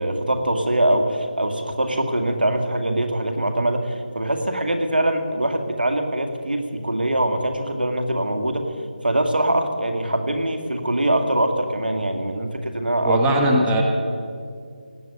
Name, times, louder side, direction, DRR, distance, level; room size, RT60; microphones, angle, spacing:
voice 1, 0.0-8.7 9.0-13.2 13.6-13.7, right 1 dB, 85° right, 6 dB, 2.1 m, -23 dB
voice 2, 13.0-13.8, right 1 dB, 10° right, -1 dB, 1.0 m, -19 dB
18.0 x 8.0 x 8.4 m, 2.2 s
figure-of-eight pair, 165°, 5 cm